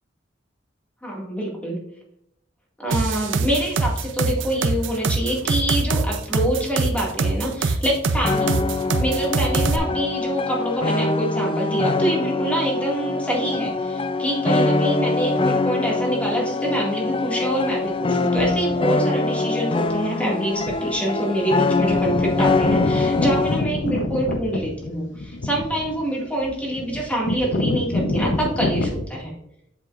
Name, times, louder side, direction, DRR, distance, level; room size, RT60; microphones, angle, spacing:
voice 1, 1.0-1.8 2.8-8.6 9.0-29.3, right 1 dB, 5° left, -2 dB, 2.0 m, -25 dB
sound 1, 2.9-9.8, right 4 dB, 85° right, 0.6 m, -23 dB
sound 2, 8.2-23.7, left 3 dB, 30° left, 0.4 m, -23 dB
sound 3, 18.4-18.8 19.9-20.0 20.6-21.0 21.3-21.4 21.6-29.0, left 2 dB, 75° left, 0.8 m, -26 dB
7.9 x 7.2 x 2.5 m, 0.76 s
head